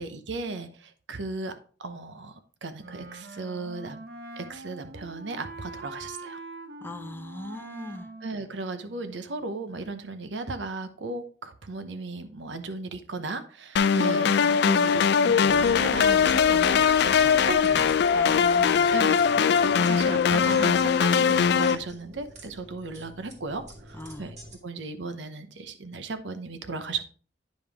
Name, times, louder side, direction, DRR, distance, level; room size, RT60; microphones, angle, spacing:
voice 1, 0.0-4.0 4.4-6.4 8.2-17.9 18.9-24.4 24.6-27.1, right 3 dB, 80° right, 0.8 m, -36 dB
Wind instrument woodwind instrument, 2.8-9.4, right 2 dB, 60° right, 0.8 m, -44 dB
voice 2, 6.8-8.1 18.1-18.9 24.0-24.2, left 1 dB, 10° left, 0.6 m, -38 dB
sound 1, 13.8-21.8, left 7 dB, 65° left, 0.4 m, -21 dB
sound 2, 15.5-24.6, right 1 dB, 40° right, 1.8 m, -45 dB
9.4 x 5.1 x 3.5 m
head